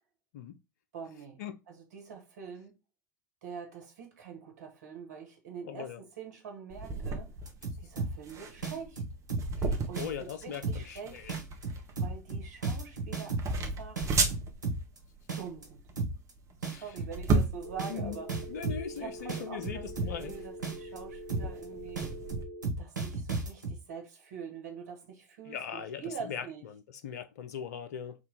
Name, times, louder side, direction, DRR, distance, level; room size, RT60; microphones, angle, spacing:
voice 1, 0.9-2.7 3.4-7.4 7.8-9.0 9.9-11.3 12.0-14.1 15.4-15.8 16.6-18.5 18.9-22.1 22.8-26.7, right 6 dB, 65° right, 1.5 m, -45 dB
voice 2, 5.7-6.0 9.6-11.3 16.7-16.8 17.9-18.2 18.5-20.3 25.5-26.0 26.3-26.4 26.7-28.2, left 8 dB, 70° left, 0.5 m, -40 dB
sound 1, 6.7-22.4, right 3 dB, 35° right, 1.1 m, -35 dB
sound 2, 7.4-8.3 8.6-9.6 10.0-10.3 10.6-11.0 11.3-13.6 14.0-15.0 15.3-15.6 16.0-16.3 16.6-19.0 19.3-20.3 20.6-21.0 21.3-21.6 22.0-23.8, right 3 dB, 90° right, 1.2 m, -34 dB
Telephone, 17.6-22.6, equal, 85° left, 0.9 m, -45 dB
3.5 x 2.9 x 3.9 m
figure-of-eight pair, 80°, 9 cm